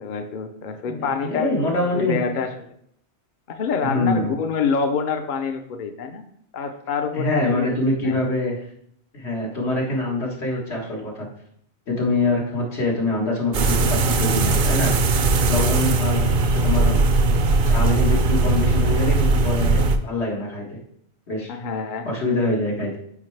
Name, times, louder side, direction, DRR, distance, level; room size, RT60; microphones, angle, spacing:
voice 1, 0.0-2.7 3.5-6.2 6.5-7.7 8.0-8.2 21.5-22.1, left 5 dB, 55° left, 6 dB, 0.7 m, -27 dB
voice 2, 0.9-2.2 3.8-4.3 7.1-8.6 9.1-11.3 11.9-15.0 15.5-17.0 17.6-20.8 21.3-21.6 22.1-23.0, left 2 dB, 90° left, -2 dB, 1.9 m, -25 dB
sound 1, 13.5-20.0, right 3 dB, 60° right, 0.7 m, -19 dB
8.4 x 4.7 x 3.3 m, 0.69 s
omnidirectional pair, 1.1 m